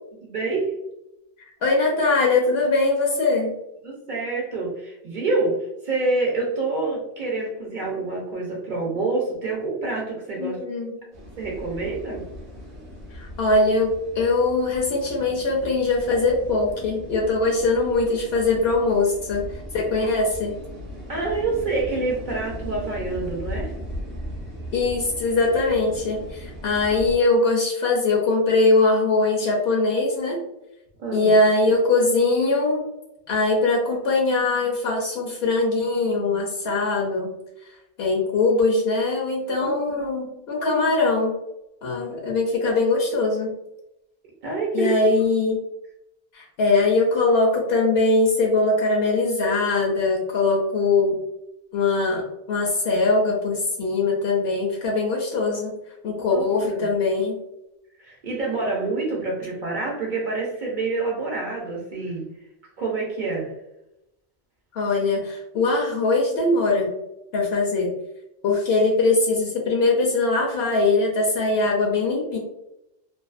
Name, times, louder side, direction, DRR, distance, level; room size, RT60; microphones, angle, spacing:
voice 1, 0.2-0.8 3.8-10.6 11.4-12.3 21.1-23.7 31.0-31.3 39.6-40.1 44.4-45.0 56.3-56.9 58.0-62.3 62.8-63.5, right 3 dB, 55° right, -3 dB, 0.6 m, -27 dB
voice 2, 1.6-3.5 10.4-11.0 13.1-19.5 19.7-20.5 24.7-30.4 31.1-32.8 33.3-37.3 38.0-41.3 41.8-43.5 44.7-45.6 46.3-51.2 51.7-55.7 56.0-57.4 64.7-66.9 67.3-67.9 68.4-72.4, left 3 dB, 70° left, -2 dB, 0.8 m, -21 dB
sound 1, 11.1-27.2, equal, 35° right, 1.0 m, -38 dB
2.6 x 2.3 x 2.3 m, 0.89 s
omnidirectional pair, 1.1 m